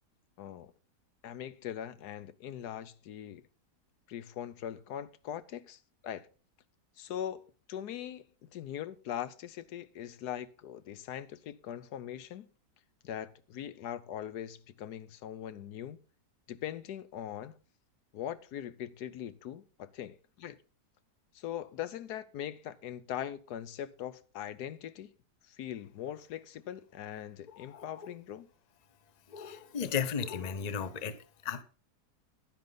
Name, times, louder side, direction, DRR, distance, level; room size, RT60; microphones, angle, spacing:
voice 1, 0.4-0.7 1.2-3.4 4.1-6.3 7.0-12.5 13.0-16.0 16.5-17.6 18.1-20.6 21.3-25.1 25.5-28.5, left 10 dB, 80° left, 1.3 m, -41 dB
voice 2, 29.3-31.1 31.4-31.6, left 7 dB, 35° left, 0.7 m, -34 dB
10.5 x 10.5 x 3.9 m
omnidirectional pair, 1.7 m